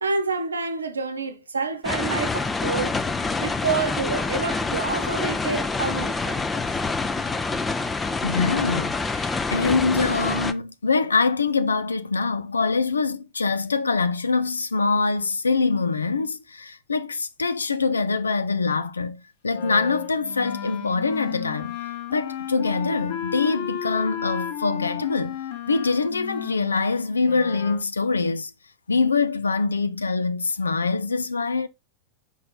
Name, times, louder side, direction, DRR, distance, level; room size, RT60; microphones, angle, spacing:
voice 1, 0.0-3.0 3.4-6.6, right 4 dB, 75° right, 0.8 m, -28 dB
sound 1, 1.8-10.5, left 3 dB, 15° left, 0.5 m, -26 dB
voice 2, 8.2-21.8 22.1-25.4 25.7-28.5 28.9-31.7, left 4 dB, 75° left, 0.4 m, -24 dB
Wind instrument woodwind instrument, 19.5-27.8, left 10 dB, 50° left, 1.2 m, -34 dB
5.4 x 4.4 x 3.9 m
figure-of-eight pair, 90°, 0 cm